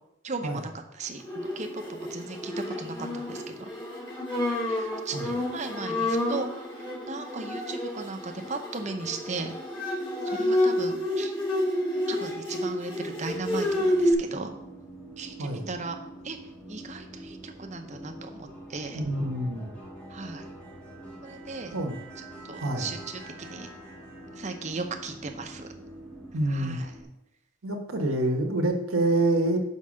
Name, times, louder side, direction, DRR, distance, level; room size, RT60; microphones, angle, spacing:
voice 1, 0.2-3.7 4.7-6.5 7.1-9.5 10.2-11.3 12.1-14.5 15.2-16.0 16.2-16.4 16.7-19.0 20.1-20.5 21.2-21.7 22.4-23.7 24.3-25.7 26.5-26.9, right 3 dB, 35° right, 5 dB, 0.7 m, -37 dB
Bowed string instrument, 1.2-14.1, left 1 dB, 25° left, 1.9 m, -29 dB
sound 1, 13.3-27.0, right 1 dB, 5° left, 1.4 m, -45 dB
voice 2, 18.9-19.7 21.7-22.0 22.6-22.9 26.3-26.8 27.6-29.6, right 1 dB, 85° right, 3 dB, 1.2 m, -27 dB
5.6 x 5.5 x 6.3 m, 0.88 s
head